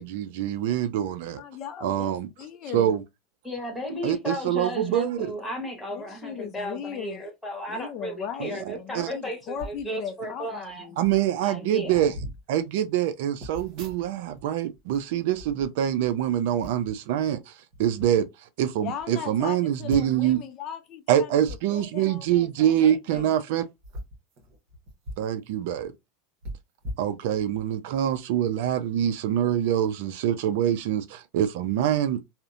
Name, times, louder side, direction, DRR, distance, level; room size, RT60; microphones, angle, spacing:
voice 1, 0.0-1.4 1.8-2.3 2.7-3.0 4.0-5.3 8.4-9.1 11.0-12.1 12.5-18.3 18.6-20.4 21.1-23.6 25.2-25.9 27.0-32.2, right 10 dB, 70° right, 0.4 m, -25 dB
voice 2, 1.3-3.0 5.9-7.2 7.7-11.0 18.8-21.4 21.7-23.4, left 8 dB, 40° left, 0.4 m, -38 dB
voice 3, 3.4-10.9 11.4-12.1, equal, 10° left, 1.2 m, -34 dB
sound 1, 9.5-9.8 10.7-10.8 11.0-11.3 11.8-12.4 13.4-14.4 14.7-16.1 16.6-17.0 17.7-18.1 18.6-18.7 19.0-19.1 19.9-20.3 21.4-21.6 23.0-23.2 23.8-25.3 25.6-25.7 26.4-27.6 28.1-28.3, equal, 50° right, 1.0 m, -40 dB
2.7 x 2.1 x 2.4 m
supercardioid pair, 140°, 0 cm